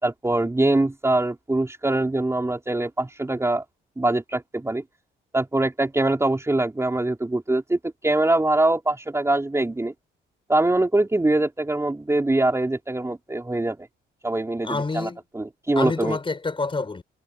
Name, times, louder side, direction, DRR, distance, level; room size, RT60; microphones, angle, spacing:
voice 1, 0.0-3.6 4.0-4.8 5.3-9.9 10.5-13.8 14.2-16.2, right 2 dB, 15° right, 3.9 m, -23 dB
voice 2, 14.6-15.2 15.7-17.0, left 3 dB, 25° left, 5.2 m, -27 dB
cardioid pair, 90°, 20 cm